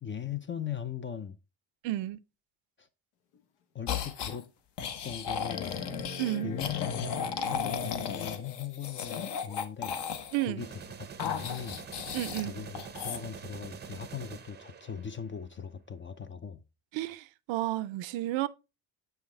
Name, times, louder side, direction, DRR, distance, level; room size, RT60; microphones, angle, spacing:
voice 1, 0.0-1.4 2.8-2.9 3.7-4.5 5.0-5.8 6.4-10.1 10.4-10.7 11.2-11.8 12.4-16.6, left 8 dB, 25° left, 0.4 m, -39 dB
voice 2, 1.8-2.2 6.2-6.5 10.3-10.7 12.1-12.5 16.9-18.5, right 15 dB, 70° right, 0.6 m, -32 dB
sound 1, 3.3-3.4 4.0-4.1 5.5-8.0 9.7-9.8, left 6 dB, 85° left, 1.2 m, -42 dB
sound 2, 3.9-4.4 4.8-10.5 11.2-12.5 12.8-13.2, left 7 dB, 55° left, 0.9 m, -35 dB
sound 3, 10.6-15.4, right 6 dB, 20° right, 0.5 m, -45 dB
6.5 x 5.7 x 3.1 m
cardioid pair, 95°, 48 cm